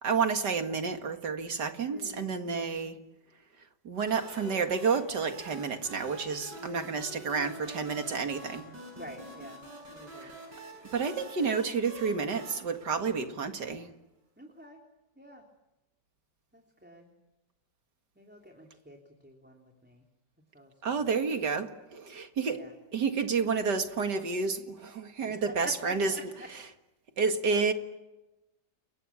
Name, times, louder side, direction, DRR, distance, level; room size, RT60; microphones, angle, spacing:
voice 1, 0.0-3.0 3.8-8.7 10.2-10.3 10.9-13.9 20.8-22.6 22.9-26.1 27.2-27.7, right 5 dB, 70° right, 2.5 m, -30 dB
voice 2, 1.9-2.8 6.6-7.0 7.4-7.7 8.9-10.3 14.4-14.8 15.2-15.4 16.5-17.1 18.2-20.0 20.5-21.1 22.5-22.7 25.3-26.5, equal, 5° right, 3.2 m, -48 dB
sound 1, 4.0-13.6, right 1 dB, 85° right, 8.7 m, -47 dB
29.5 x 22.5 x 8.6 m
omnidirectional pair, 1.9 m